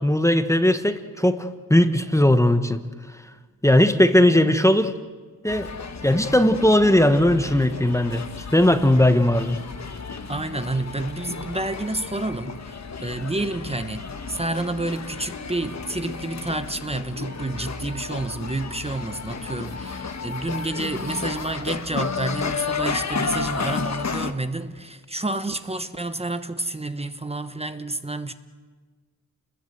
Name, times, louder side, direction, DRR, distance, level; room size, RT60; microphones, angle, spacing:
voice 1, 0.0-2.8 3.6-5.0 5.4-5.7 6.0-8.2 8.5-9.6, left 1 dB, 10° left, 9 dB, 1.1 m, -18 dB
sound 1, 5.5-24.3, left 5 dB, 50° left, 1.3 m, -32 dB
voice 2, 10.3-28.3, right 2 dB, 15° right, 9 dB, 1.1 m, -29 dB
29.0 x 20.5 x 8.0 m, 1.4 s
wide cardioid pair, 115°, 35 cm